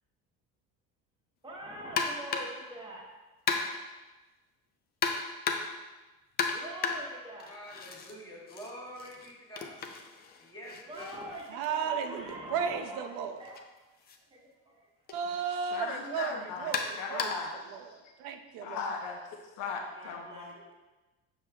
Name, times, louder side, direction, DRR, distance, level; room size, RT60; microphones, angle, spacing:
voice 1, 1.4-3.1 6.5-7.5 10.8-13.1 13.4-13.6 14.3-14.4 14.7-14.9 19.9-20.7, right 1 dB, 15° right, -2 dB, 0.9 m, -44 dB
sound 1, 2.0-2.7 3.5-4.0 5.0-5.9 6.4-8.1 8.5-12.3 13.4-13.6 14.1-14.2 15.1-15.2 16.7-17.6, left 5 dB, 30° left, 0.4 m, -35 dB
voice 2, 7.5-9.8 10.4-11.1, equal, 10° left, -4 dB, 1.2 m, -46 dB
voice 3, 11.5-13.4 15.1-17.3 17.7-18.8, right 6 dB, 80° right, 7 dB, 0.6 m, -34 dB
voice 4, 15.5-17.8 18.6-19.2 19.6-20.7, left 4 dB, 90° left, 1 dB, 0.9 m, -38 dB
7.0 x 6.4 x 2.2 m, 1.1 s
cardioid pair, 165°, 33 cm